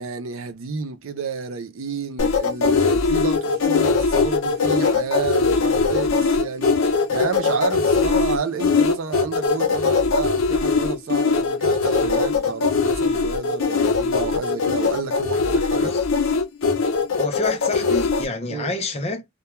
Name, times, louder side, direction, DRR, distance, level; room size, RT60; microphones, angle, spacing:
voice 1, 0.0-15.9 18.5-18.7, right 5 dB, 80° right, 0.5 m, -30 dB
sound 1, 2.2-18.2, left 4 dB, 85° left, 0.5 m, -20 dB
voice 2, 17.2-19.3, left 2 dB, 30° left, 0.5 m, -28 dB
2.3 x 2.2 x 2.9 m
head